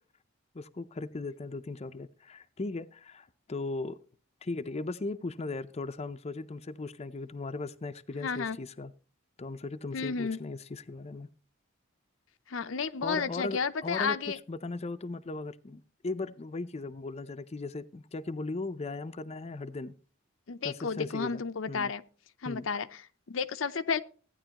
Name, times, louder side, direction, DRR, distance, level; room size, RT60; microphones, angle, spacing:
voice 1, 0.5-4.0 4.4-8.9 9.4-11.3 13.0-14.2 14.5-19.9 20.6-21.4 21.7-21.9 22.4-22.7, left 3 dB, 30° left, 0.5 m, -37 dB
voice 2, 8.2-8.6 9.9-10.4 12.5-14.4 20.5-22.0 22.4-24.0, left 5 dB, 80° left, 0.6 m, -32 dB
15.0 x 9.7 x 2.9 m
head